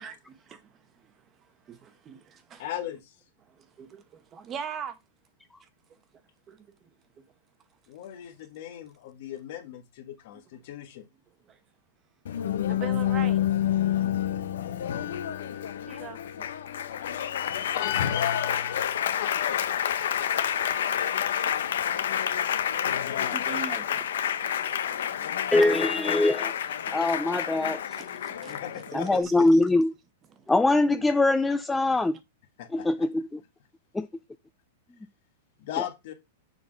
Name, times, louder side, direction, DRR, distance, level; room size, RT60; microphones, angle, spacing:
voice 1, 0.0-2.6 3.4-5.0 5.6-6.2 6.5-7.2 11.4-11.6 12.4-13.4 14.5-15.0 15.5-16.5 17.0-17.7 23.0-25.4 26.0-26.4 26.6-29.6 30.3-30.5 30.9-31.1, right 7 dB, 25° right, 0.9 m, -44 dB
voice 2, 2.6-3.1 7.9-11.1 17.7-18.8 19.2-21.9 22.6-23.4 28.5-29.5 32.6-33.1 35.6-36.1, left 11 dB, 55° left, 1.5 m, -37 dB
Applause, 12.3-29.2, left 10 dB, 80° left, 0.8 m, -29 dB
voice 3, 25.5-26.5 26.9-27.8 28.9-29.9 30.5-32.2 32.7-33.4 33.9-34.1, left 2 dB, 5° left, 0.3 m, -23 dB
6.9 x 4.0 x 5.2 m
supercardioid pair, 155°, 0 cm